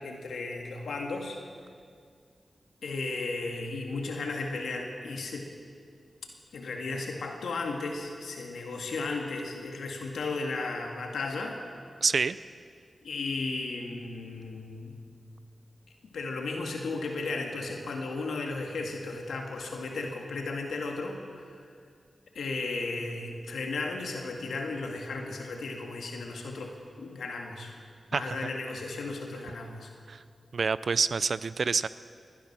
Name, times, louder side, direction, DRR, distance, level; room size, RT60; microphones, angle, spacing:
voice 1, 0.0-1.4 2.8-5.5 6.5-11.6 13.0-15.0 16.0-21.7 22.3-27.7 28.1-29.9, left 3 dB, 90° left, 2 dB, 1.9 m, -35 dB
voice 2, 12.0-12.4 28.1-28.5 30.1-30.2 30.5-31.9, right 5 dB, 70° right, 16 dB, 0.4 m, -27 dB
20.5 x 10.5 x 6.0 m, 2.2 s
cardioid pair, 45°, 0 cm